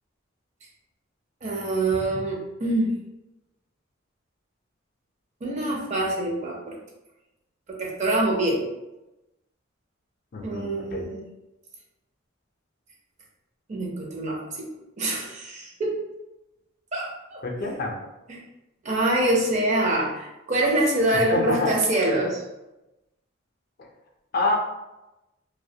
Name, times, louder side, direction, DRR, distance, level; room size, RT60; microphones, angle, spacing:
voice 1, 1.4-2.9 5.4-6.8 7.7-8.6 10.4-11.2 13.7-14.7 15.0-16.0 16.9-17.4 18.3-18.4 18.8-22.4, right 1 dB, 35° right, -1 dB, 0.5 m, -25 dB
voice 2, 10.3-11.1 17.4-17.9 21.3-21.7 24.3-24.6, left 2 dB, 50° left, 0 dB, 0.4 m, -27 dB
2.3 x 2.1 x 2.6 m, 0.98 s
head